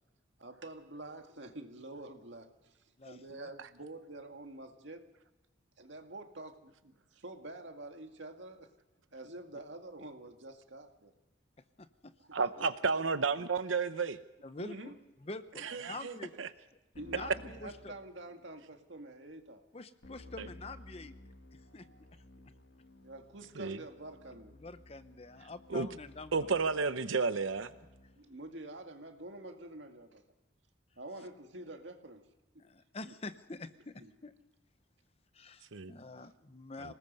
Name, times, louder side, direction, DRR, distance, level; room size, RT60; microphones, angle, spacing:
voice 1, 0.4-2.8 3.0-5.1 5.8-8.7 9.1-11.1 12.3-12.7 14.6-15.0 15.5-16.2 17.0-19.6 21.7-22.0 23.0-24.6 28.2-30.2 31.0-32.3 33.1-33.2 34.0-34.1, right 2 dB, 70° right, 5 dB, 2.1 m, -47 dB
voice 2, 3.0-3.5 11.8-12.1 14.4-15.0 15.2-16.3 17.0-17.9 19.7-21.1 21.5-21.9 24.6-26.5 32.6-34.3 35.3-36.9, left 2 dB, 30° left, 12 dB, 0.7 m, -46 dB
voice 3, 12.3-14.2 15.6-16.0 16.4-16.5 20.4-20.5 23.6-23.8 25.7-25.9 26.3-27.7 35.7-35.9 36.8-36.9, right 4 dB, 85° right, 12 dB, 0.8 m, -32 dB
Keyboard (musical), 16.9-18.6 20.0-28.4, left 1 dB, 70° left, 2.0 m, -56 dB
26.5 x 19.0 x 5.4 m, 1.0 s
head